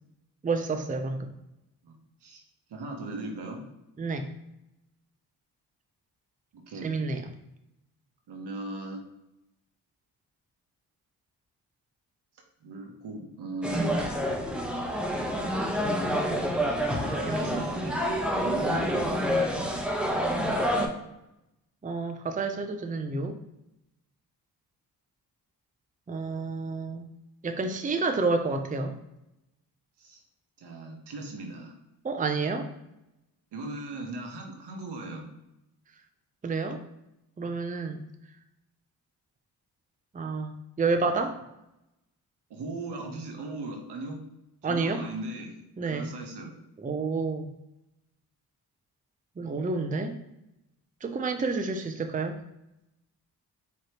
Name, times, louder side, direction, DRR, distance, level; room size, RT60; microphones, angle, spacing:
voice 1, 0.4-1.3 4.0-4.3 6.8-7.2 17.3-17.6 21.8-23.4 26.1-27.1 27.4-29.0 32.0-32.7 36.4-36.8 37.4-38.0 40.1-41.4 44.6-45.0 45.8-46.1 46.8-47.5 49.4-50.2 51.0-52.4, right 3 dB, 20° right, 6 dB, 0.6 m, -29 dB
voice 2, 1.8-2.4 2.7-3.6 6.5-6.9 8.3-9.0 12.6-14.1 16.9-19.2 30.0-30.2 30.6-31.8 33.5-35.3 42.5-44.2 44.6-45.5 45.9-46.5, right 2 dB, 75° right, 2 dB, 1.2 m, -38 dB
sound 1, 13.6-20.9, equal, ahead, 0.9 m, -28 dB
4.9 x 3.1 x 3.0 m, 0.89 s
cardioid pair, 65°, 40 cm